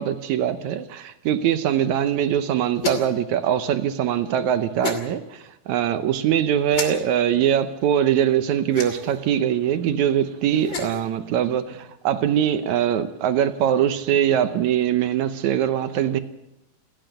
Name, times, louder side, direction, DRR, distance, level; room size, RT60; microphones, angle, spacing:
voice 1, 0.0-16.2, right 10 dB, 70° right, 1.8 m, -22 dB
sound 1, 2.8-3.2 4.8-5.0 6.7-6.9 8.7-9.2 10.5-11.0, left 5 dB, 35° left, 2.9 m, -29 dB
28.5 x 10.0 x 9.0 m
omnidirectional pair, 4.2 m